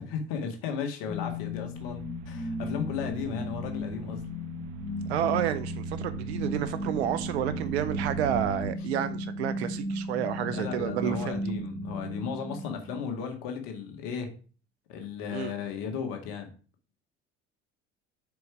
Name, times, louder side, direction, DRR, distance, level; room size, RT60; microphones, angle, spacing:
voice 1, 0.0-4.2 10.4-14.3 14.9-16.5, left 6 dB, 70° left, 1.8 m, -35 dB
sound 1, 1.1-13.1, left 2 dB, 15° left, 1.0 m, -35 dB
sound 2, 1.8-8.7, right 14 dB, 60° right, 0.5 m, -40 dB
voice 2, 5.1-11.4 15.3-15.5, right 10 dB, 85° right, 0.8 m, -30 dB
5.1 x 4.7 x 6.0 m
hypercardioid pair, 65°, 32 cm